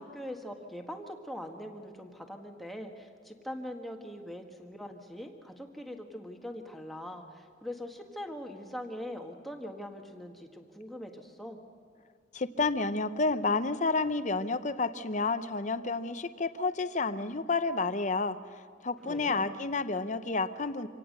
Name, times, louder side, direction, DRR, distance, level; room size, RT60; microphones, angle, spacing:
voice 1, 0.0-11.6 19.0-19.5, equal, ahead, 2 dB, 1.6 m, -42 dB
voice 2, 12.3-18.4 18.8-20.9, left 3 dB, 40° left, 11 dB, 0.8 m, -30 dB
25.5 x 17.5 x 6.6 m, 2.2 s
head